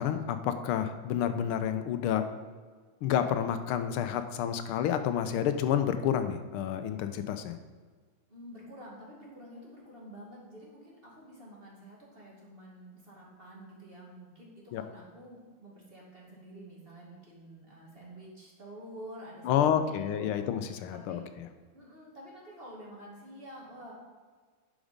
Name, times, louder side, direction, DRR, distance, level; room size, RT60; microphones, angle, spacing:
voice 1, 0.0-2.2 3.0-7.6 14.7-14.8 19.4-21.5, left 9 dB, 85° left, 9 dB, 1.5 m, -29 dB
voice 2, 8.3-20.5 20.9-21.2 21.7-23.9, right 1 dB, 25° right, -4 dB, 2.2 m, -49 dB
11.5 x 5.1 x 5.1 m, 1.5 s
omnidirectional pair, 2.4 m